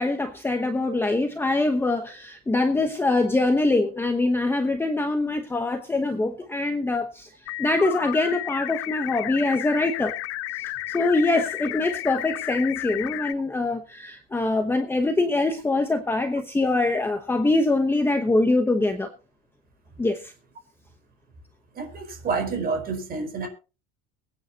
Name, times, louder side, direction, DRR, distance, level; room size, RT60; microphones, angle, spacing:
voice 1, 0.0-7.3 7.6-10.1 10.5-19.1 20.0-20.3, left 2 dB, 5° left, 4 dB, 1.0 m, -24 dB
sound 1, 7.5-13.3, left 17 dB, 50° left, 0.6 m, -32 dB
voice 2, 21.7-23.5, right 4 dB, 30° right, 5 dB, 4.7 m, -28 dB
23.0 x 9.4 x 2.9 m, 0.33 s
cardioid pair, 165°, 31 cm